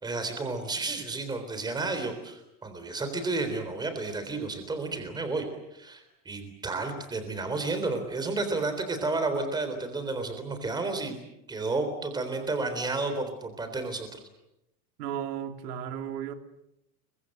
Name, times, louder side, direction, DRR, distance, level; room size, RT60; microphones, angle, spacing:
voice 1, 0.0-5.5 5.7-11.2 11.5-14.2, right 3 dB, 10° right, 3.7 m, -31 dB
voice 2, 15.0-16.3, right 9 dB, 70° right, 3.3 m, -34 dB
29.0 x 24.0 x 7.8 m
supercardioid pair, 180°, 49 cm